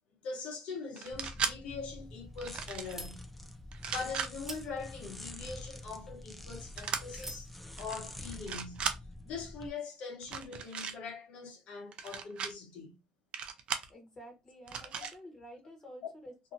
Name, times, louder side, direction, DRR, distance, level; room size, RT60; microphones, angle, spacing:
voice 1, 0.2-3.3 3.9-7.5 7.8-8.9 9.2-12.9, left 4 dB, 70° left, 1.0 m, -42 dB
sound 1, 1.0-1.5 2.4-2.9 3.7-4.3 6.8-7.0 7.8-8.0 8.3-9.0 10.2-10.9 11.9-12.5 13.3-13.9 14.7-15.1, right 6 dB, 55° right, 0.5 m, -36 dB
sound 2, 1.1-9.7, left 1 dB, 5° left, 0.5 m, -47 dB
sound 3, 1.7-7.5, right 1 dB, 20° right, 1.3 m, -52 dB
voice 2, 13.9-16.5, equal, 30° left, 1.3 m, -51 dB
2.7 x 2.5 x 2.5 m
supercardioid pair, 75°, 2 cm